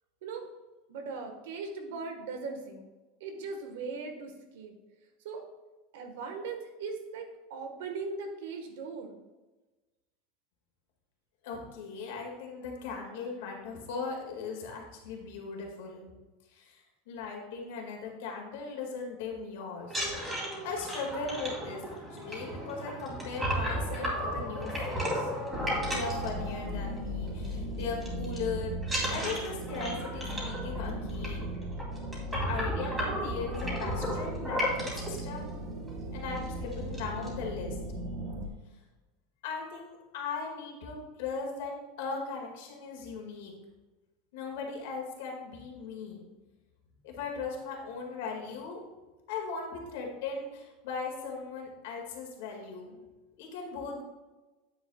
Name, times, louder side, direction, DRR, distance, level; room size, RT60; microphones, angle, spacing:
voice 1, 0.9-2.8 3.2-4.7 5.2-5.4 5.9-9.1, right 4 dB, 80° right, 4 dB, 1.5 m, -39 dB
voice 2, 11.4-16.1 16.5-20.1 20.6-25.3 25.9-28.7 29.1-31.6 32.4-35.5 36.1-37.8 39.4-43.5 44.3-46.3 47.0-48.8 49.3-53.0 53.4-54.0, left 4 dB, 75° left, 0 dB, 2.1 m, -38 dB
sound 1, 19.8-27.0 27.3-27.5 27.8-28.4 28.8-35.2 35.9-36.0 36.3-36.5 36.7-37.3, equal, 10° right, 2.3 m, -34 dB
sound 2, 25.5-38.5, right 1 dB, 50° right, 1.1 m, -37 dB
8.9 x 7.8 x 2.4 m, 1.2 s
supercardioid pair, 155°, 0 cm